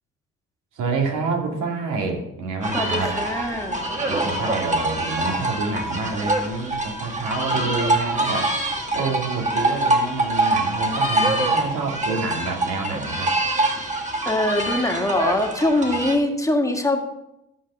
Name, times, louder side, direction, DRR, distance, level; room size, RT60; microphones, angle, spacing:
voice 1, 0.7-3.1 4.1-8.5 8.9-13.3, right 3 dB, 85° right, 1 dB, 2.5 m, -28 dB
sound 1, 2.6-16.1, right 2 dB, 25° right, 2.0 m, -24 dB
voice 2, 2.7-3.8 14.3-17.0, left 1 dB, 10° left, 2 dB, 1.8 m, -23 dB
14.0 x 5.1 x 6.8 m, 0.87 s
cardioid pair, 90°, 30 cm